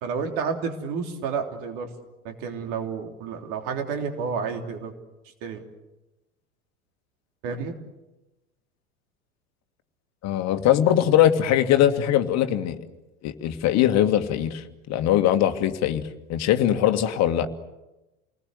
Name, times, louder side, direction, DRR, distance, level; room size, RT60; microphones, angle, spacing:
voice 1, 0.0-1.9 2.3-4.9 5.4-5.6 7.4-7.7, right 5 dB, 50° right, 4 dB, 3.5 m, -30 dB
voice 2, 10.2-12.8 13.2-16.0 16.3-17.5, left 11 dB, 35° left, 7 dB, 1.9 m, -21 dB
29.0 x 20.5 x 8.0 m, 1.0 s
figure-of-eight pair, 80°, 44 cm